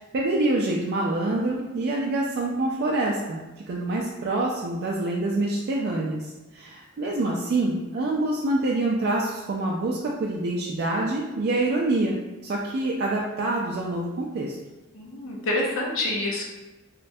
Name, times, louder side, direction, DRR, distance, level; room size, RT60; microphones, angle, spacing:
voice 1, 0.1-3.4 3.7-12.2 12.4-14.6, right 2 dB, 50° right, -3 dB, 0.3 m, -26 dB
voice 2, 7.0-7.3 14.9-16.4, left 2 dB, 75° left, -2 dB, 0.6 m, -28 dB
3.1 x 2.1 x 2.6 m, 1.1 s
head